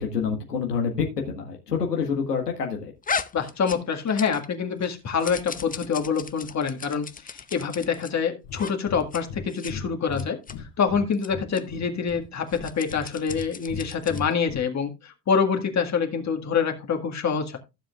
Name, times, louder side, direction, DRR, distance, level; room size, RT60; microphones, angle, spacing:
voice 1, 0.0-2.9, left 6 dB, 90° left, 1 dB, 1.7 m, -27 dB
sound 1, 3.0-4.5 4.8-8.1 8.5-8.7 9.0-9.2 9.5-9.7 10.1-10.5 11.1-11.3 11.5-11.6 12.4-14.3, left 6 dB, 20° left, 0.8 m, -36 dB
voice 2, 3.3-10.4 10.8-17.6, left 6 dB, 35° left, 4 dB, 1.8 m, -26 dB
Breathing, 8.4-8.6 8.9-9.0 9.3-9.4 9.7-11.0 11.3-12.2 12.5-13.4 13.7-14.6, left 5 dB, 65° left, 2.6 m, -36 dB
15.5 x 7.4 x 2.4 m, 0.25 s
hypercardioid pair, 60°, 46 cm